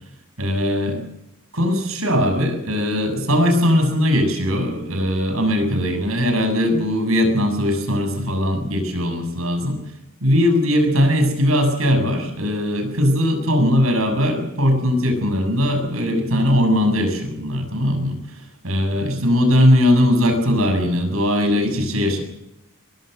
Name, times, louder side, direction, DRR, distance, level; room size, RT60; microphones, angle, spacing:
voice 1, 0.4-1.0 1.5-9.8 10.2-22.2, equal, 80° right, 6 dB, 7.1 m, -19 dB
22.5 x 22.0 x 6.7 m, 0.84 s
head